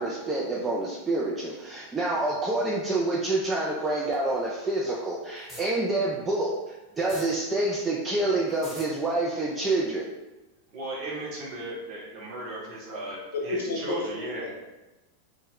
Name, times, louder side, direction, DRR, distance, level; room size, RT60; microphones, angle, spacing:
voice 1, 0.0-10.1, right 2 dB, 15° right, -4 dB, 0.3 m, -27 dB
sound 1, 5.4-5.6 6.9-7.2 8.5-8.9, equal, 5° left, 0.9 m, -41 dB
voice 2, 10.7-14.5, right 1 dB, 40° right, -5 dB, 0.9 m, -36 dB
voice 3, 13.5-14.5, left 2 dB, 65° left, -2 dB, 0.6 m, -31 dB
2.1 x 2.1 x 3.5 m, 1.1 s
figure-of-eight pair, 90°, 0 cm